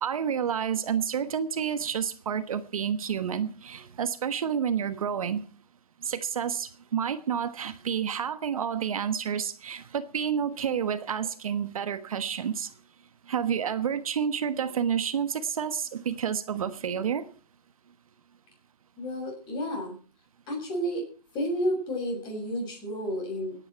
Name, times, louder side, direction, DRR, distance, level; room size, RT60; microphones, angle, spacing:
voice 1, 0.0-5.4 6.0-12.7 13.3-17.3, right 8 dB, 60° right, 1.3 m, -29 dB
voice 2, 19.0-20.0 20.5-21.1 21.3-23.7, equal, 25° left, 6.6 m, -31 dB
23.5 x 9.8 x 4.5 m
hypercardioid pair, 145°, 20 cm